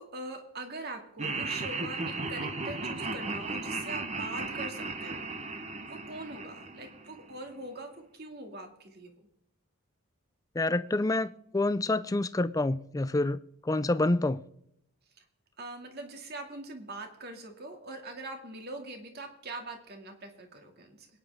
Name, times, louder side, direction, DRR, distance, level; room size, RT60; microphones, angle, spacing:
voice 1, 0.0-5.2 5.8-9.3 15.2-15.3 15.6-21.1, right 2 dB, 45° right, 2.3 m, -42 dB
Laughter, 1.2-7.4, right 3 dB, 30° right, 1.0 m, -36 dB
voice 2, 10.6-14.4, left 2 dB, 15° left, 0.4 m, -28 dB
22.0 x 10.0 x 3.6 m
head